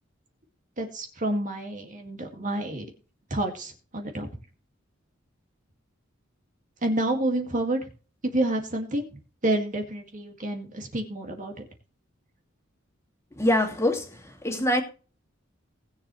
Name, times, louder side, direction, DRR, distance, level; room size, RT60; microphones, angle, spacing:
voice 1, 0.8-2.9 3.3-4.3 6.8-7.9 8.2-11.7, right 1 dB, 40° right, 2.1 m, -29 dB
voice 2, 13.4-14.8, left 1 dB, 15° left, 2.5 m, -24 dB
19.5 x 7.5 x 3.2 m
head